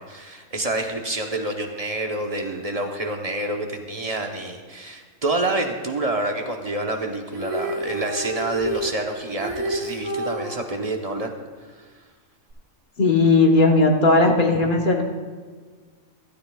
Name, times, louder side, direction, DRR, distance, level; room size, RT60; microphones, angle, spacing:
voice 1, 0.0-11.3, right 2 dB, 35° right, 3 dB, 0.8 m, -27 dB
Female singing, 7.3-10.5 12.5-12.6, right 1 dB, 65° right, 3.7 m, -29 dB
voice 2, 13.0-15.0, left 3 dB, 40° left, 1 dB, 1.2 m, -17 dB
15.5 x 12.5 x 2.3 m, 1.5 s
omnidirectional pair, 1.4 m